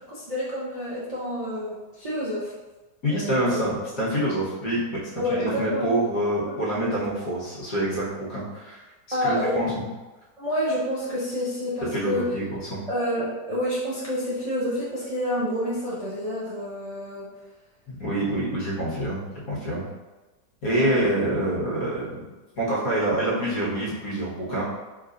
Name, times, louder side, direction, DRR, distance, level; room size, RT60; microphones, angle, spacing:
voice 1, 0.0-2.5 3.1-3.5 5.2-5.9 6.4-6.5 9.1-9.6 10.4-12.3 12.9-17.3 20.7-21.0, equal, 35° right, -9 dB, 0.6 m, -28 dB
voice 2, 3.0-5.0 5.3-8.8 9.2-9.8 11.9-12.8 17.9-19.8 20.6-22.2 22.6-24.6, right 1 dB, 55° left, -7 dB, 1.8 m, -26 dB
4.6 x 3.7 x 2.6 m, 1.2 s
omnidirectional pair, 1.8 m